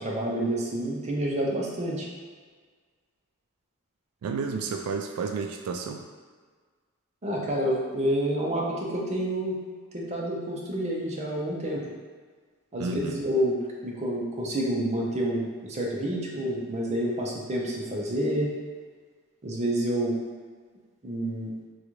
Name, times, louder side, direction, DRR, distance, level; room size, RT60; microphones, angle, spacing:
voice 1, 0.0-2.1 7.2-9.6 9.9-11.9 12.7-18.5 19.4-20.1 21.0-21.5, right 1 dB, 30° right, -3 dB, 0.6 m, -28 dB
voice 2, 4.2-6.0 12.8-13.2, right 4 dB, 90° right, 8 dB, 0.3 m, -31 dB
3.8 x 2.3 x 3.0 m, 1.5 s
head